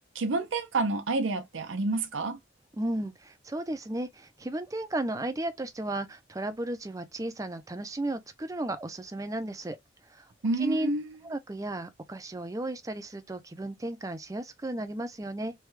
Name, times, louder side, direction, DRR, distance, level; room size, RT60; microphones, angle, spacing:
voice 1, 0.1-2.4 10.4-11.0, right 3 dB, 85° right, 0.6 m, -29 dB
voice 2, 2.8-9.8 10.1-10.3 10.6-10.9 11.2-15.5, right 1 dB, 15° right, 0.4 m, -34 dB
3.2 x 2.2 x 3.2 m
head